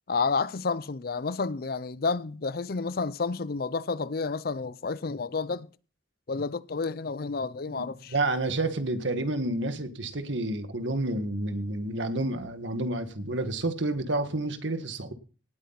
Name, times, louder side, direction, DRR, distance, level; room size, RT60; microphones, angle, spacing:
voice 1, 0.1-5.7 6.3-8.1, left 4 dB, 50° left, 0.5 m, -30 dB
voice 2, 7.7-15.1, right 2 dB, 75° right, 1.6 m, -30 dB
18.5 x 8.5 x 4.0 m
head